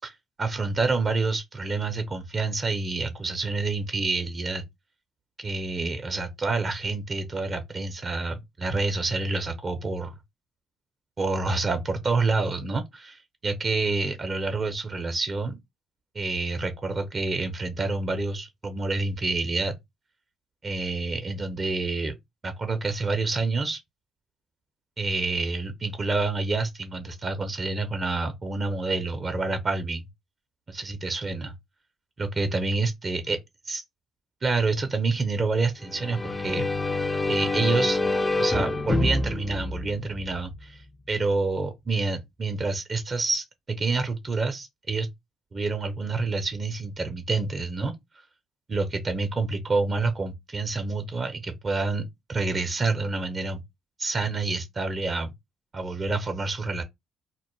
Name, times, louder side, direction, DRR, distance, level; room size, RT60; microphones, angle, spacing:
voice 1, 0.0-4.6 5.4-10.1 11.2-15.5 16.1-19.7 20.6-22.1 22.4-23.8 25.0-30.0 30.7-31.5 32.2-33.4 33.7-33.8 34.4-36.7 37.3-38.0 38.4-45.1 45.5-47.9 48.7-53.6 54.0-55.3 55.7-56.8, right 3 dB, 40° right, 0.5 m, -28 dB
sound 1, 35.8-40.6, left 2 dB, 20° left, 0.4 m, -27 dB
2.2 x 2.1 x 3.0 m
hypercardioid pair, 50°, 0 cm